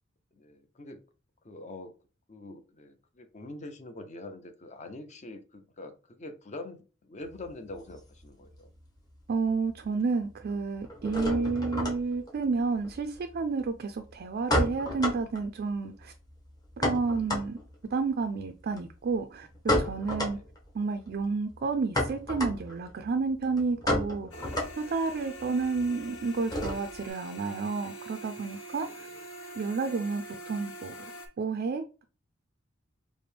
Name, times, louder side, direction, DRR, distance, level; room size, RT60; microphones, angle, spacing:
voice 1, 0.3-1.0 1.4-1.9 2.3-8.7 20.2-20.5 28.8-29.2, left 2 dB, 35° left, 0.6 m, -45 dB
sound 1, 7.2-8.9 9.1-9.8 10.1-27.1, left 1 dB, 20° left, 0.9 m, -33 dB
voice 2, 9.3-16.1 16.8-17.6 17.9-20.4 20.7-24.5 24.8-29.1 29.5-30.9 31.4-32.0, right 4 dB, 50° right, 0.4 m, -30 dB
sound 2, 24.3-31.3, right 1 dB, 80° left, 1.0 m, -44 dB
5.0 x 2.1 x 3.3 m
head